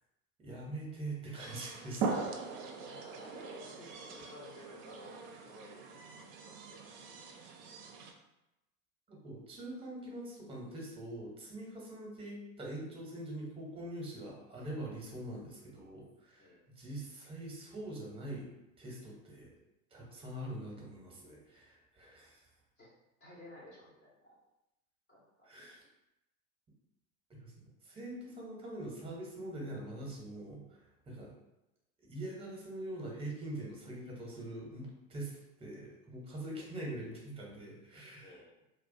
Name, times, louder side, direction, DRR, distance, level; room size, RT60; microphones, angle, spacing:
voice 1, 0.4-2.3 9.1-18.5 18.8-19.5 19.9-22.4 25.4-25.8 27.4-27.5 27.8-31.3 32.0-38.4, right 1 dB, 15° right, -2 dB, 0.7 m, -44 dB
sound 1, 1.4-8.1, right 4 dB, 45° right, 0.4 m, -41 dB
voice 2, 2.8-7.2 16.4-16.6 22.2-22.9 23.2-24.4 25.1-25.5 38.2-38.5, left 1 dB, 25° left, -5 dB, 0.5 m, -55 dB
2.3 x 2.1 x 2.5 m, 0.93 s
hypercardioid pair, 85°, 42 cm